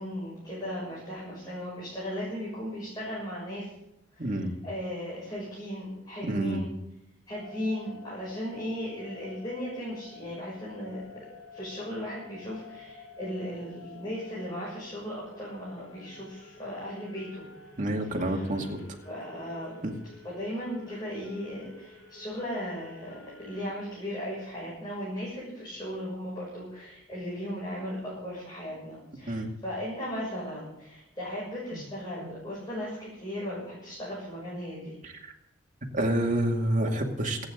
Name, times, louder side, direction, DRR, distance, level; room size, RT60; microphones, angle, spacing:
voice 1, 0.0-3.7 4.1-4.3 4.6-6.7 7.3-11.2 11.5-17.5 18.1-18.4 19.0-19.9 20.2-35.0, equal, 20° left, -7 dB, 6.8 m, -37 dB
voice 2, 4.2-4.5 6.2-6.7 17.8-18.8 19.8-19.9 29.3-29.5 31.7-31.8 32.2-32.3 35.0-35.3 35.9-37.5, right 1 dB, 40° right, 1 dB, 2.4 m, -28 dB
sound 1, 7.3-23.9, left 4 dB, 80° left, 3.8 m, -51 dB
27.5 x 9.6 x 3.9 m, 0.84 s
head